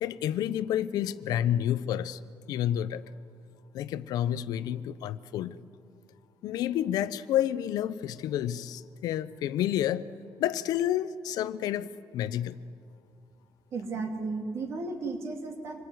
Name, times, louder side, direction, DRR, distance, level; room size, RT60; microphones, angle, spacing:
voice 1, 0.0-2.2 2.5-3.0 3.7-5.6 6.4-10.1 10.4-12.6, left 11 dB, 75° left, 14 dB, 0.8 m, -29 dB
voice 2, 13.7-15.9, right 3 dB, 45° right, 5 dB, 2.6 m, -34 dB
26.0 x 21.0 x 9.4 m, 2.4 s
cardioid pair, 175°, 7 cm